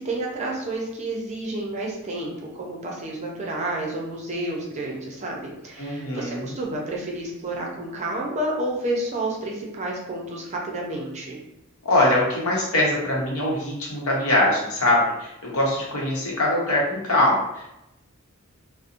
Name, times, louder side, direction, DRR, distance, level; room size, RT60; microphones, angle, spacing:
voice 1, 0.0-11.4, right 1 dB, 30° right, -2 dB, 0.5 m, -30 dB
voice 2, 5.8-6.5 11.8-17.7, left 1 dB, 75° left, -4 dB, 0.8 m, -22 dB
2.8 x 2.0 x 2.5 m, 0.89 s
head